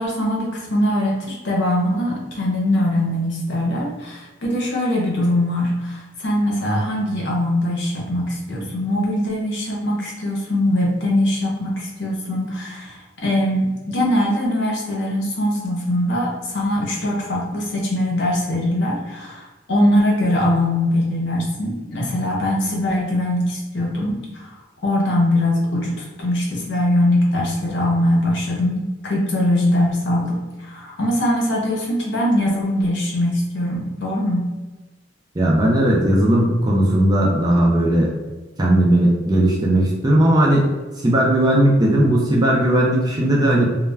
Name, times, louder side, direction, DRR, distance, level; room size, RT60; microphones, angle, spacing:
voice 1, 0.0-24.5 24.8-30.4 30.7-34.5, left 1 dB, 60° left, -2 dB, 0.7 m, -21 dB
voice 2, 35.4-38.1 38.6-40.7 41.0-43.7, right 1 dB, 20° right, -3 dB, 0.4 m, -17 dB
2.2 x 2.1 x 3.2 m, 1.2 s
head